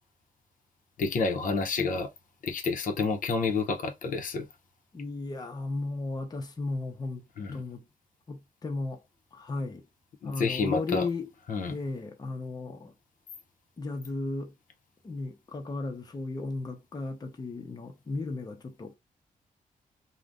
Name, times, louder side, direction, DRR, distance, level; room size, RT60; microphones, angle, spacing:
voice 1, 1.0-2.1 2.4-4.5 7.4-7.6 10.2-11.1 11.5-11.7, left 4 dB, 70° left, 0.7 m, -29 dB
voice 2, 4.9-7.2 7.5-7.8 8.3-9.0 9.3-9.8 10.2-11.3 11.7-12.9 13.8-14.5 15.0-19.0, left 3 dB, 25° left, 0.7 m, -35 dB
2.5 x 2.2 x 3.4 m
wide cardioid pair, 120°, 15 cm